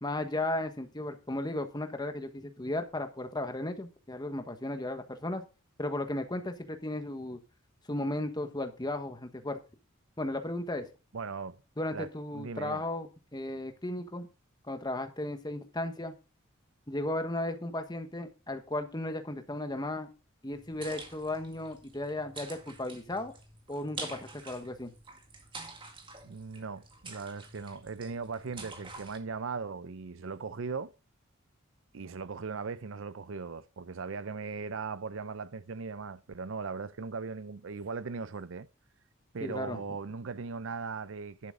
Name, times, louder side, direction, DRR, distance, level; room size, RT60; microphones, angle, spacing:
voice 1, 0.0-5.4 5.8-7.4 7.9-9.6 10.2-10.9 11.8-14.3 14.7-16.1 16.9-20.1 20.4-23.3 23.7-24.9 39.4-39.8, left 1 dB, 20° left, 1.3 m, -35 dB
voice 2, 11.1-11.6 11.9-12.1 12.3-12.8 26.2-30.9 31.9-38.7 39.3-41.5, right 5 dB, 65° right, 0.6 m, -38 dB
sound 1, 20.5-29.2, right 3 dB, 25° right, 2.0 m, -47 dB
11.0 x 8.3 x 3.8 m
head